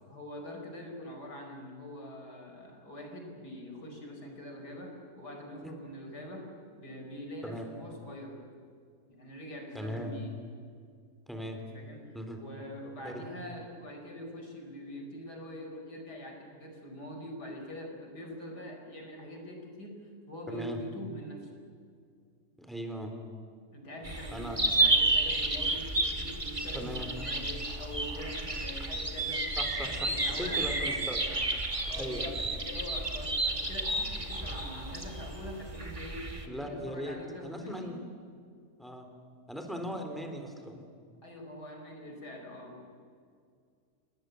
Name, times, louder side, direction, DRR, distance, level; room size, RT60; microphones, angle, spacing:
voice 1, 0.1-8.4 9.1-10.4 11.4-21.6 23.7-30.9 31.9-38.1 41.2-42.9, left 1 dB, 85° left, 3 dB, 5.4 m, -44 dB
voice 2, 9.7-10.1 11.3-11.6 12.1-12.4 13.0-13.1 20.5-20.8 22.6-23.1 24.3-24.6 26.7-27.1 29.6-30.1 30.4-31.2 32.0-32.3 36.5-37.2 37.4-38.0 38.8-39.1 39.5-40.9, equal, ahead, 4 dB, 3.6 m, -38 dB
sound 1, 24.0-36.5, right 2 dB, 20° right, 2.1 m, -31 dB
27.0 x 19.5 x 9.4 m, 2.2 s
omnidirectional pair, 1.7 m